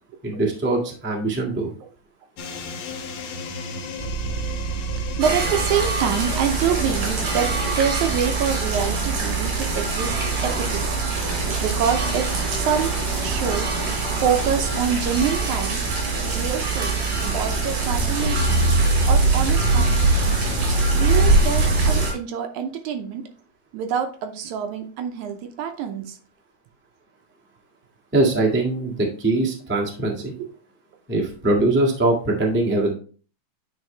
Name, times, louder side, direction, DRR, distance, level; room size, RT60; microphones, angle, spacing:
voice 1, 0.2-1.7 28.1-30.3 31.1-32.9, right 2 dB, 15° right, -1 dB, 0.4 m, -22 dB
sound 1, 2.4-9.9, left 4 dB, 75° left, 1.2 m, -36 dB
sound 2, 4.0-22.1, right 3 dB, 30° right, 1.0 m, -24 dB
sound 3, 5.2-22.1, right 2 dB, 50° right, 4.1 m, -28 dB
voice 2, 5.2-10.2 10.4-10.9 11.6-12.9 13.2-13.8 14.2-15.8 16.3-17.0 17.3-18.6 19.1-20.4 21.0-23.2 23.7-26.2 30.3-30.5, right 8 dB, 75° right, 6 dB, 2.0 m, -26 dB
9.2 x 4.7 x 3.2 m, 0.40 s
omnidirectional pair, 3.8 m